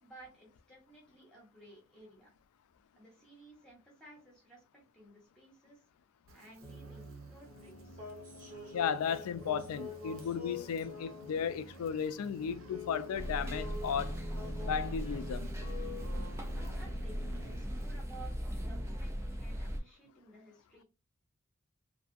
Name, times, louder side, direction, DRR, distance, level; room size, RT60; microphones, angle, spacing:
voice 1, 0.0-2.3 2.9-4.6 4.9-5.8 6.3-8.0 16.5-20.8, right 2 dB, 5° left, 1.0 m, -56 dB
Fire, 6.3-18.0, right 3 dB, 75° right, 0.6 m, -61 dB
sound 1, 6.6-18.0, left 2 dB, 40° right, 1.1 m, -47 dB
voice 2, 8.7-14.2 14.6-15.5, left 7 dB, 90° left, 0.3 m, -35 dB
sound 2, 13.1-19.8, equal, 10° right, 0.3 m, -38 dB
2.6 x 2.3 x 2.5 m
head